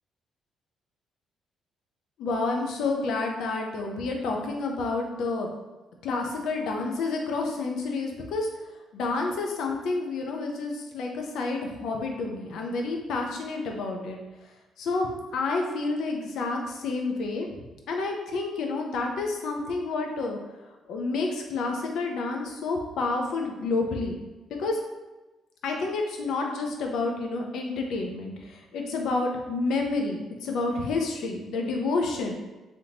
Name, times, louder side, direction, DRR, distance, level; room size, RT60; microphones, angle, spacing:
voice 1, 2.2-5.5 6.0-8.5 8.9-14.2 14.8-17.5 17.9-20.4 20.9-24.2 24.6-24.8 25.6-32.3, left 3 dB, 75° left, 2 dB, 0.5 m, -29 dB
3.4 x 2.7 x 2.8 m, 1.1 s
cardioid pair, 90°, 0 cm